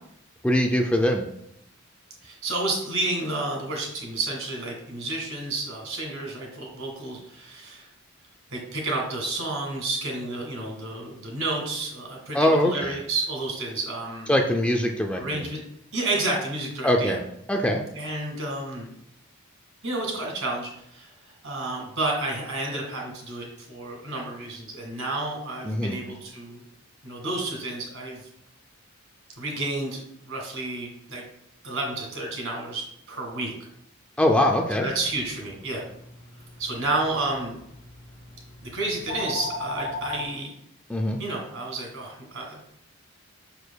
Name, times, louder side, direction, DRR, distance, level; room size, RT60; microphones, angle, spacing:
voice 1, 0.4-1.2 12.3-12.7 14.3-15.5 16.8-17.2 17.5-17.8 25.6-26.0 34.2-34.9 40.9-41.2, left 1 dB, 5° left, 2 dB, 0.4 m, -22 dB
voice 2, 2.2-7.9 8.5-14.3 15.2-15.6 15.9-17.2 17.9-18.9 19.8-26.6 27.0-28.3 29.4-31.2 31.6-33.7 34.7-35.8 36.6-37.6 38.6-40.5 41.2-42.6, right 2 dB, 65° right, 0 dB, 2.2 m, -31 dB
sound 1, 34.8-40.2, left 2 dB, 55° left, 0.8 m, -38 dB
6.9 x 6.2 x 2.3 m, 0.75 s
head